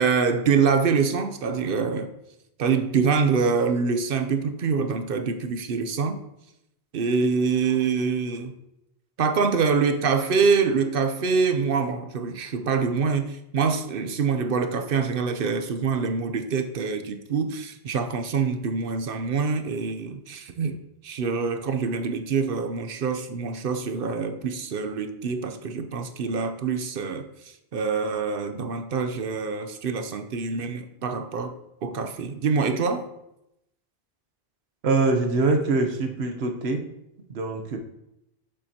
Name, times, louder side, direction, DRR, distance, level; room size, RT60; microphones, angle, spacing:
voice 1, 0.0-2.1 2.6-6.2 6.9-8.5 9.2-20.8 21.0-31.5 31.8-33.1, right 5 dB, 65° right, 8 dB, 0.8 m, -25 dB
voice 2, 34.8-36.8 37.3-37.8, right 3 dB, 80° right, 5 dB, 1.2 m, -23 dB
7.5 x 6.7 x 2.8 m, 0.85 s
omnidirectional pair, 1.1 m